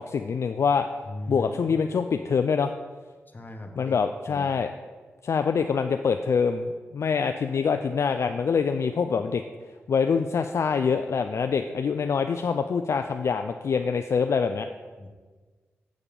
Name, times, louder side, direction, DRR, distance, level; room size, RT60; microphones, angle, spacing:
voice 1, 0.0-0.9 1.3-2.7 3.8-4.7 5.2-9.4 9.9-14.7, left 6 dB, 65° left, 7 dB, 0.4 m, -25 dB
voice 2, 1.0-1.8 3.3-4.0 4.3-4.6 15.0-15.1, left 1 dB, 35° left, 4 dB, 1.3 m, -39 dB
7.2 x 6.5 x 5.2 m, 1.4 s
supercardioid pair, 40°, 5 cm